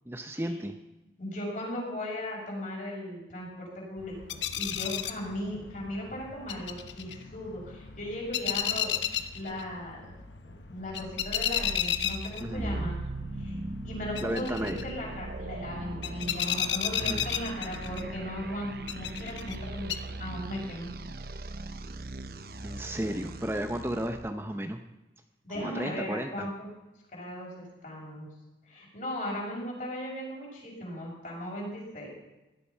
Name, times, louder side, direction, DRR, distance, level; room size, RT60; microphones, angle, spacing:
voice 1, 0.1-0.8 12.4-12.9 14.2-14.9 17.0-17.3 22.6-24.8 25.5-26.5, equal, 15° right, 6 dB, 0.7 m, -33 dB
voice 2, 1.2-10.1 10.4-13.0 13.4-19.9 20.2-20.9 25.4-26.7 27.1-28.3 28.6-32.1, left 1 dB, 45° left, -3 dB, 6.1 m, -37 dB
sound 1, 4.0-20.0, left 9 dB, 90° left, 1.0 m, -35 dB
sound 2, 11.1-24.3, right 2 dB, 55° right, 0.9 m, -39 dB
17.0 x 12.0 x 5.7 m, 1.0 s
head